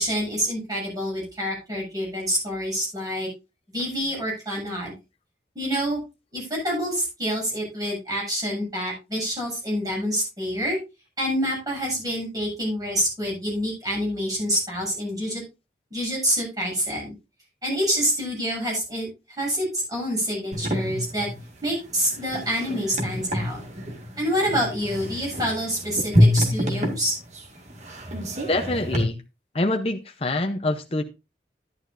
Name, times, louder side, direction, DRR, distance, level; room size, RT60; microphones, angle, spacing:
voice 1, 0.0-3.3 3.7-4.9 5.5-6.0 6.3-10.8 11.2-15.4 15.9-17.1 17.6-21.3 21.6-23.6 24.2-27.1, equal, 20° right, -3 dB, 7.5 m, -27 dB
sound 1, 20.5-29.0, equal, 40° right, 1.9 m, -26 dB
voice 2, 28.5-29.2 29.5-31.0, left 2 dB, 35° left, 5 dB, 0.7 m, -25 dB
11.5 x 11.0 x 2.5 m, 0.26 s
head